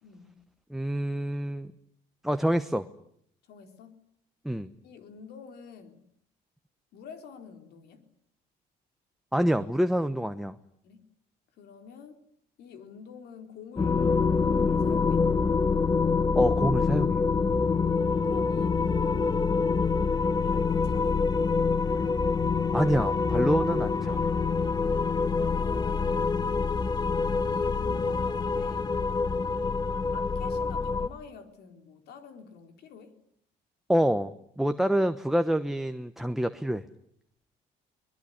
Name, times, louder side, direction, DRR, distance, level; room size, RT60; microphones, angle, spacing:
voice 1, 0.0-0.4 3.4-4.0 4.8-6.0 6.9-8.1 10.8-11.0 11.6-12.2 12.6-15.3 18.2-19.6 20.4-21.6 25.3-26.5 27.1-29.3 30.1-33.1, left 6 dB, 75° left, 7 dB, 4.0 m, -48 dB
voice 2, 0.7-1.7 2.2-2.9 4.4-4.7 9.3-10.6 16.3-17.2 22.7-24.3 33.9-36.8, equal, ahead, 8 dB, 1.0 m, -27 dB
sound 1, 13.8-31.1, left 4 dB, 25° left, 1.1 m, -26 dB
24.0 x 21.0 x 10.0 m, 0.71 s
cardioid pair, 110°, 17 cm